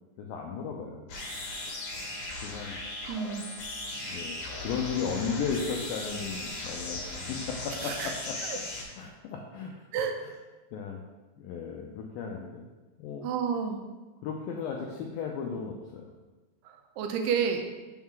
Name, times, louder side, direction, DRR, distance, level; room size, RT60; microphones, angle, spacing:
voice 1, 0.2-1.1 2.4-2.8 4.1-4.4 4.6-8.4 8.9-9.7 10.2-10.3 10.7-11.0 11.4-12.6 13.0-13.3 14.2-16.1, left 6 dB, 85° left, 0 dB, 2.0 m, -35 dB
sound 1, 1.1-8.8, left 2 dB, 60° left, 2.5 m, -38 dB
voice 2, 3.1-3.5 7.8-8.1 8.4-8.6 9.9-10.1 13.2-13.8 17.0-17.7, right 7 dB, 85° right, 4 dB, 2.6 m, -30 dB
6.4 x 3.7 x 5.9 m, 1.2 s
omnidirectional pair, 4.8 m